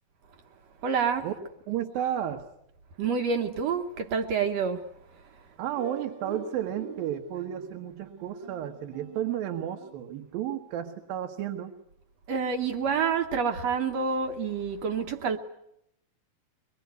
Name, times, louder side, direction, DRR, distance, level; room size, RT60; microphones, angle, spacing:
voice 1, 0.8-1.4 3.0-4.9 12.3-15.4, right 6 dB, 60° right, 1.9 m, -28 dB
voice 2, 1.7-2.5 5.6-11.7, right 10 dB, 80° right, 3.1 m, -32 dB
sound 1, 5.8-10.3, right 6 dB, 20° right, 1.6 m, -45 dB
24.0 x 22.5 x 9.3 m
omnidirectional pair, 4.1 m